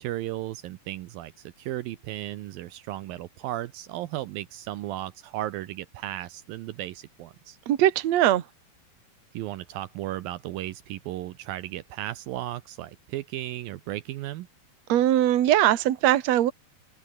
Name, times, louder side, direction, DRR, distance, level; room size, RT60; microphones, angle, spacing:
voice 1, 0.0-7.6 9.3-14.5, right 14 dB, 75° right, 2.6 m, -35 dB
voice 2, 7.7-8.4 14.9-16.5, right 13 dB, 55° right, 2.3 m, -21 dB
open air
omnidirectional pair, 4.4 m